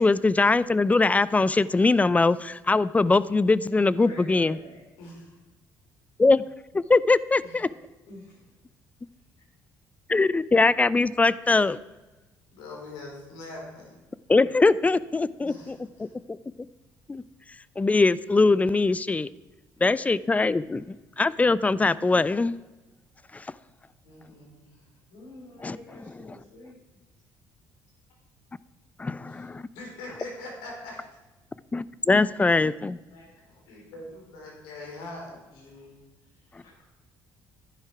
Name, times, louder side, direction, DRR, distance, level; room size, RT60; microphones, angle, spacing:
voice 1, 0.0-4.6 6.2-6.4 6.7-7.7 10.1-11.8 14.3-16.4 17.1-17.2 17.8-19.3 19.8-22.6 23.3-23.5 25.6-25.8 29.0-29.7 31.7-33.0, left 3 dB, 20° left, 19 dB, 0.5 m, -22 dB
voice 2, 3.9-4.9 8.1-8.5 9.3-9.4 25.1-26.8 32.4-32.6 33.1-33.3 36.6-36.7, left 2 dB, 70° left, -5 dB, 4.7 m, -47 dB
voice 3, 5.0-5.4 7.4-7.6 12.5-14.0 15.4-16.1 24.0-24.9 29.3-29.5 29.7-31.1 33.5-36.0 36.5-36.6, left 2 dB, 85° left, -1 dB, 4.4 m, -43 dB
11.5 x 10.5 x 4.9 m, 1.1 s
supercardioid pair, 80°, 8 cm